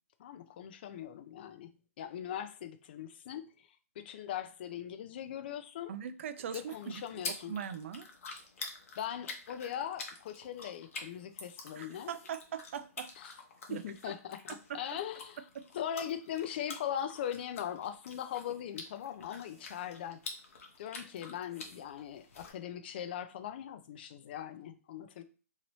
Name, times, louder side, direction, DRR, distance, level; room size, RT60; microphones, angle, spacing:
voice 1, 0.2-1.7 2.0-3.7 4.0-5.9 6.5-7.5 9.0-12.1 13.2-13.3 13.7-15.4 15.7-20.2 20.8-25.2, left 10 dB, 40° left, 0.4 m, -40 dB
voice 2, 5.9-6.9 7.3-8.1 11.8-13.1 13.7-13.8 14.7-14.8 15.6-15.7, right 8 dB, 50° right, 0.3 m, -40 dB
sound 1, 6.4-22.5, left 4 dB, 55° left, 0.8 m, -48 dB
2.9 x 2.7 x 3.0 m
hypercardioid pair, 160°, 9 cm